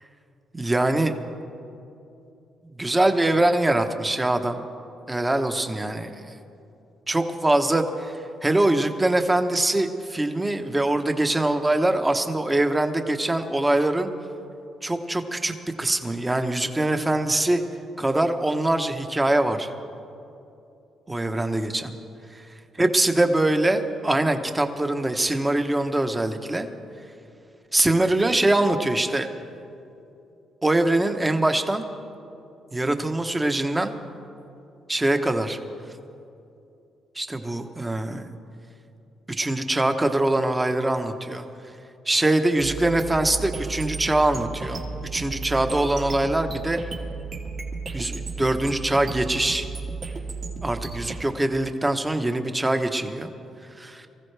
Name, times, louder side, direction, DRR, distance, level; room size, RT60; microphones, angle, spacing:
voice 1, 0.5-1.2 2.8-4.6 5.1-6.3 7.1-14.1 14.8-17.6 18.0-19.7 21.1-21.9 22.3-22.5 22.8-26.7 27.7-29.3 30.6-31.9 32.7-33.9 34.9-35.6 37.1-38.3 39.3-41.4 42.1-44.8 45.1-46.8 47.9-49.7 50.6-53.3 53.8-54.1, right 1 dB, 15° right, 6 dB, 1.0 m, -23 dB
sound 1, 42.6-51.2, right 4 dB, 60° right, 2.3 m, -34 dB
23.5 x 15.0 x 3.4 m, 2.7 s
cardioid pair, 90°, 0 cm